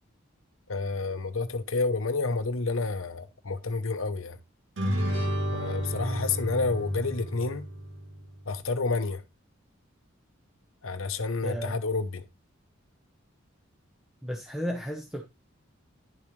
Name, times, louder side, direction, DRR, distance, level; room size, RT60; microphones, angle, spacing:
voice 1, 0.7-4.4 5.5-7.7 8.5-9.2 10.8-12.2, left 3 dB, 75° left, 0.9 m, -29 dB
sound 1, 4.8-8.4, equal, 60° right, 3.5 m, -31 dB
voice 2, 11.4-11.8 14.2-15.2, equal, 5° right, 1.0 m, -33 dB
10.5 x 7.0 x 3.2 m
head